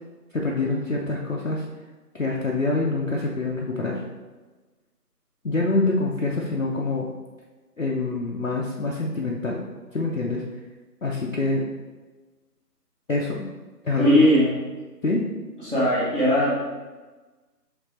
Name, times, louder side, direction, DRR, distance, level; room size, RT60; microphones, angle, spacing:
voice 1, 0.3-1.6 2.1-4.0 5.4-7.1 7.8-9.6 9.9-10.4 11.0-11.7 13.1-13.4 13.8-14.2 15.0-15.2, left 2 dB, 55° left, -3 dB, 0.6 m, -25 dB
voice 2, 14.0-14.5 15.6-16.5, equal, 35° right, -11 dB, 1.1 m, -19 dB
5.2 x 3.2 x 3.1 m, 1.3 s
figure-of-eight pair, 180°, 49 cm